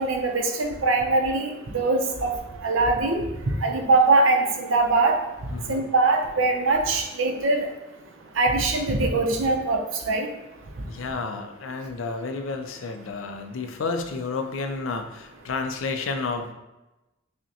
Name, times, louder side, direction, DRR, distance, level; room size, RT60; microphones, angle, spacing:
voice 1, 0.0-2.3 2.6-3.2 3.6-5.2 5.7-7.7 8.4-9.8 10.1-10.3, right 3 dB, 75° right, 3 dB, 0.6 m, -22 dB
voice 2, 5.5-5.8 10.9-16.5, left 4 dB, 75° left, 6 dB, 0.4 m, -31 dB
6.1 x 2.1 x 2.8 m, 1.0 s
head